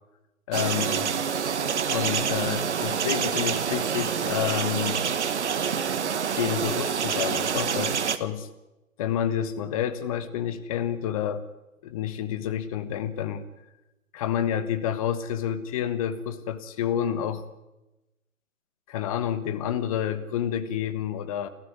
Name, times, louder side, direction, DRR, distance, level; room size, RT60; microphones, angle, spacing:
voice 1, 0.5-1.1 1.9-5.0 6.4-8.5 9.0-11.4 11.8-13.5 14.1-17.4 18.9-21.5, left 9 dB, 25° left, 11 dB, 1.4 m, -29 dB
sound 1, 0.5-8.2, right 7 dB, 55° right, 1.6 m, -27 dB
28.0 x 14.5 x 9.7 m, 1.0 s
figure-of-eight pair, 145°, 42 cm